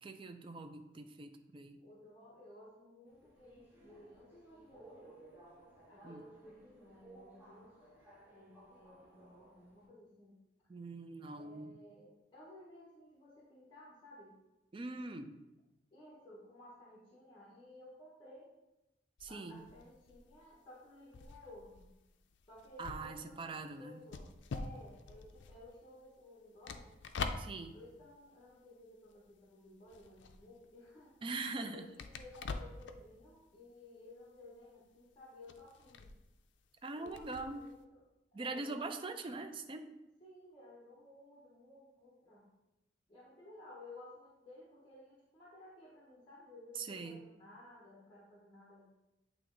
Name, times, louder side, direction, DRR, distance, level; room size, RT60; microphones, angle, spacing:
voice 1, 0.0-1.8 6.0-6.2 10.7-11.7 14.7-15.4 19.2-19.6 22.8-24.0 27.4-27.8 31.2-31.8 36.8-37.6 38.3-40.0 46.8-47.2, right 3 dB, 30° right, 7 dB, 0.4 m, -43 dB
voice 2, 1.8-5.2 5.9-7.8 8.3-10.4 11.3-14.4 15.9-18.5 19.2-21.9 22.5-26.9 27.7-31.2 31.6-36.1 36.9-38.0 38.3-39.3 40.2-42.5 43.1-48.9, left 1 dB, 25° left, -5 dB, 1.0 m, -56 dB
Subway metro underground, 3.1-9.8, right 2 dB, 10° right, 1.2 m, -60 dB
sound 1, 19.2-29.4 29.7-37.8, left 4 dB, 75° left, 0.4 m, -46 dB
8.4 x 3.0 x 3.8 m, 0.96 s
head